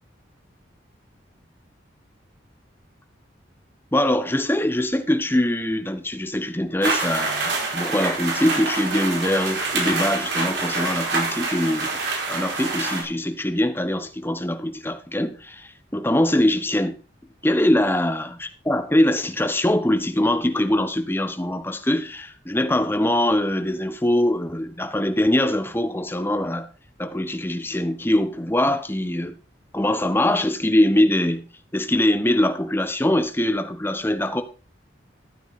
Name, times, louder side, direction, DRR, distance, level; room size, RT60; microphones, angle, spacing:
voice 1, 3.9-11.9 12.3-17.0 17.4-26.7 27.0-29.3 29.7-31.4 31.7-34.4, left 1 dB, 10° left, 1.0 m, -22 dB
sound 1, 6.8-13.0, right 3 dB, 65° right, 4.7 m, -26 dB
13.0 x 9.1 x 4.3 m
head